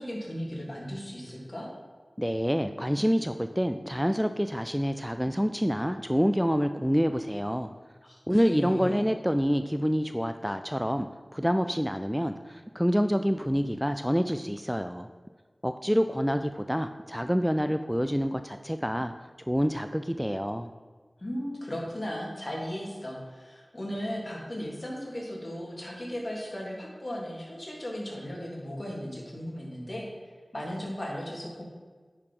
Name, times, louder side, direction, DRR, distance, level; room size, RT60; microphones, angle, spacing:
voice 1, 0.0-1.7 8.0-9.0 21.2-31.6, equal, 40° left, -3 dB, 2.8 m, -36 dB
voice 2, 2.2-7.7 8.3-15.1 15.6-19.1 19.5-20.7, equal, ahead, 8 dB, 0.4 m, -27 dB
9.8 x 4.8 x 5.4 m, 1.4 s
wide cardioid pair, 50°, 0 cm